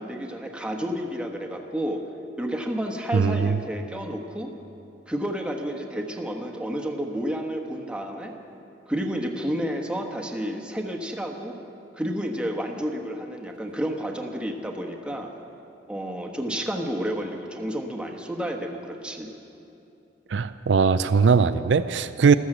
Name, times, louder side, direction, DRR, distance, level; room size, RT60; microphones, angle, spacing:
voice 1, 0.0-2.0 2.4-4.5 5.1-8.3 8.9-11.6 11.9-15.3 15.9-19.3, equal, 5° right, 2 dB, 1.2 m, -30 dB
voice 2, 3.1-3.6 20.3-22.3, right 5 dB, 80° right, 12 dB, 0.4 m, -20 dB
13.5 x 13.5 x 7.8 m, 2.7 s
head